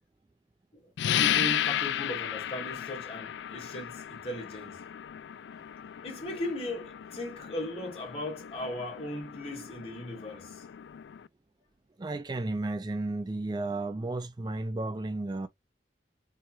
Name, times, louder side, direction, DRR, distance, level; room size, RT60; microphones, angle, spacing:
sound 1, 1.0-11.3, left 11 dB, 80° left, 0.3 m, -34 dB
voice 1, 1.2-4.8 6.0-10.6, left 1 dB, 35° left, 2.3 m, -37 dB
voice 2, 12.0-15.5, right 2 dB, 25° right, 0.4 m, -33 dB
4.7 x 4.3 x 2.4 m
head